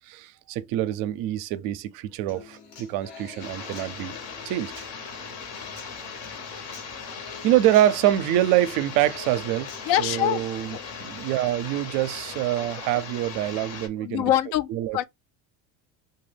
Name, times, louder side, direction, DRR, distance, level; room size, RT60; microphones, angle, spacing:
voice 1, 0.1-4.1 4.4-4.8 7.4-9.7 10.0-14.3 14.7-15.0, right 13 dB, 65° right, 0.5 m, -25 dB
Human voice / Acoustic guitar, 2.3-10.3, left 5 dB, 80° left, 1.2 m, -47 dB
sound 1, 3.4-13.9, left 5 dB, 45° left, 0.9 m, -38 dB
voice 2, 9.9-10.5 10.7-10.8 14.0-15.0, left 12 dB, 60° left, 0.5 m, -24 dB
3.0 x 2.3 x 3.2 m
cardioid pair, 135°, 36 cm